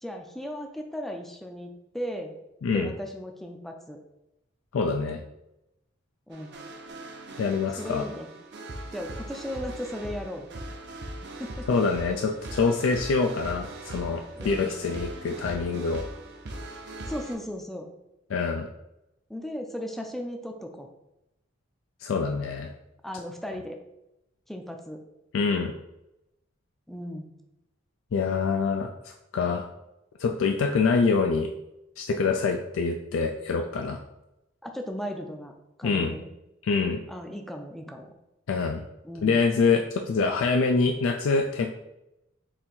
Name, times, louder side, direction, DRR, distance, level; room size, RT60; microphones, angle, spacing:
voice 1, 0.0-2.3 2.7-4.0 6.3-6.6 7.8-8.3 8.9-10.5 11.4-11.7 14.4-14.7 17.1-17.9 19.3-20.9 23.0-23.8 24.5-25.0 26.9-27.3 34.6-35.5 35.8-36.3 37.1-38.1 39.0-39.4, equal, ahead, 3 dB, 0.4 m, -36 dB
voice 2, 4.7-5.2 7.4-8.0 11.7-16.0 18.3-18.7 22.0-22.7 25.3-25.7 28.1-29.7 30.2-31.5 32.0-34.0 35.8-36.2 36.6-37.0 38.5-38.8 39.2-41.7, left 4 dB, 90° left, 3 dB, 0.4 m, -25 dB
sound 1, 6.3-17.3, right 1 dB, 60° right, 0.7 m, -40 dB
3.9 x 2.7 x 4.3 m, 0.89 s
head